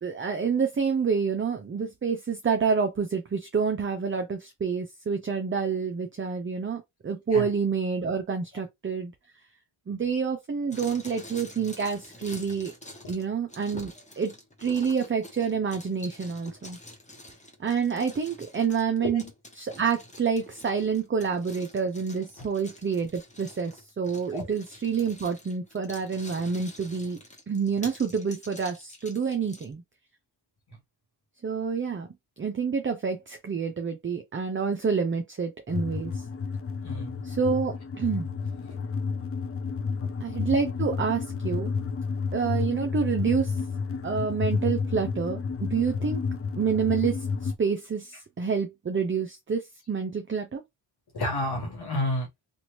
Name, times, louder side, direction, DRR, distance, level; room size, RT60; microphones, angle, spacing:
voice 1, 0.0-9.1 9.9-12.7 13.1-14.3 14.6-16.8 17.6-19.2 19.6-27.2 27.5-29.8 31.4-32.1 32.4-36.2 37.2-38.3 40.2-41.7 42.3-43.6 44.0-46.2 46.6-50.6, right 6 dB, 25° right, 0.5 m, -28 dB
sound 1, 10.7-29.7, left 1 dB, 15° left, 1.0 m, -47 dB
voice 2, 19.0-19.3 24.3-24.5 36.8-37.2 51.1-52.3, left 1 dB, 50° left, 1.1 m, -30 dB
sound 2, 35.7-47.6, left 5 dB, 30° left, 0.5 m, -31 dB
2.9 x 2.5 x 2.9 m
cardioid pair, 65°, 49 cm